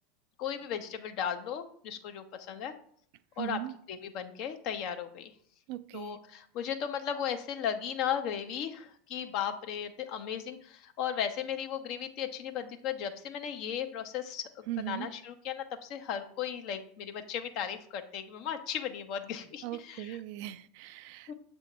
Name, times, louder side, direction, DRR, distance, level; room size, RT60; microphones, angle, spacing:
voice 1, 0.4-2.7 3.4-3.6 3.9-5.3 5.9-20.2 21.3-21.4, left 8 dB, 50° left, 7 dB, 0.8 m, -36 dB
voice 2, 3.4-3.7 5.7-6.2 14.7-15.1 19.6-21.3, right 14 dB, 55° right, 13 dB, 0.4 m, -38 dB
7.2 x 2.7 x 5.4 m, 0.62 s
hypercardioid pair, 85°, 0 cm